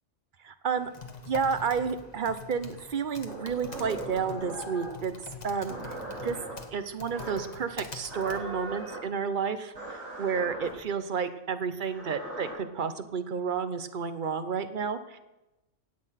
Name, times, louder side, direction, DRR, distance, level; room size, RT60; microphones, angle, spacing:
voice 1, 0.4-0.9 1.3-5.8 6.2-6.4 6.7-15.2, right 6 dB, 45° right, 10 dB, 1.0 m, -31 dB
Typing, 0.8-9.0, left 3 dB, 35° left, 1.3 m, -45 dB
sound 1, 3.3-5.0 5.7-6.5 7.1-7.6 8.1-9.0 9.7-10.7 11.8-12.5, right 2 dB, 70° right, 5.8 m, -39 dB
16.0 x 8.7 x 5.8 m, 0.99 s
omnidirectional pair, 1.3 m